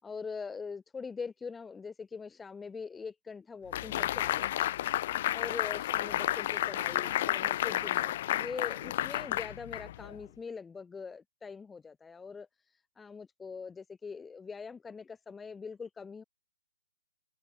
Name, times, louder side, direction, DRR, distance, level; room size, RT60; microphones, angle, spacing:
voice 1, 0.0-4.7 5.3-16.2, left 5 dB, 10° left, 4.2 m, -43 dB
sound 1, 3.7-10.2, left 13 dB, 45° left, 0.5 m, -31 dB
hypercardioid pair, 145°, 0 cm